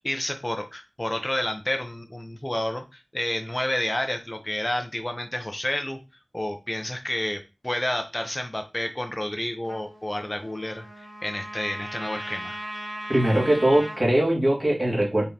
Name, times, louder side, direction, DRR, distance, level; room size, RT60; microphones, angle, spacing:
voice 1, 0.0-6.0 6.3-12.6, left 1 dB, 25° left, 5 dB, 0.6 m, -30 dB
Trumpet, 9.6-14.0, right 1 dB, 80° right, 1.5 m, -38 dB
voice 2, 13.1-15.2, right 1 dB, 35° right, -3 dB, 2.2 m, -21 dB
5.2 x 3.6 x 2.8 m, 0.28 s
wide cardioid pair, 50°, 0 cm